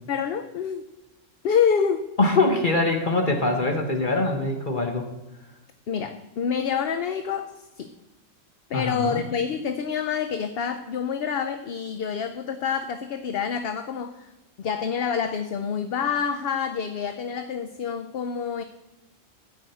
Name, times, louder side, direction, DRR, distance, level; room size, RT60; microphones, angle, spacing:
voice 1, 0.1-0.8 1.4-2.1 5.9-7.9 8.7-14.3 14.6-18.6, left 7 dB, 60° left, 9 dB, 0.8 m, -27 dB
voice 2, 2.2-5.1 8.7-9.2, left 2 dB, 40° left, 4 dB, 1.3 m, -23 dB
13.0 x 5.1 x 7.8 m, 1.0 s
omnidirectional pair, 1.3 m